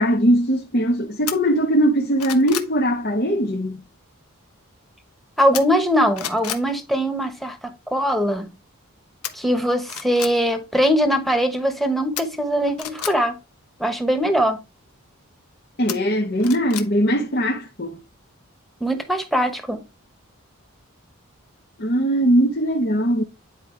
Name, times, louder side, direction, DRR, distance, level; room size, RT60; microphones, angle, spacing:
voice 1, 0.0-3.8 15.8-18.0 21.8-23.2, equal, 45° left, 1.0 m, -20 dB
sound 1, 1.3-1.4 1.9-2.7 5.5-5.9 6.1-6.6 9.2-9.3 9.8-10.3 12.2-13.1 15.9-16.9 17.3-17.4, left 9 dB, 85° left, 1.2 m, -31 dB
voice 2, 5.4-7.6 7.9-8.5 9.3-13.3 13.8-14.6 18.8-19.8, equal, ahead, 1.3 m, -21 dB
9.9 x 5.0 x 3.3 m
head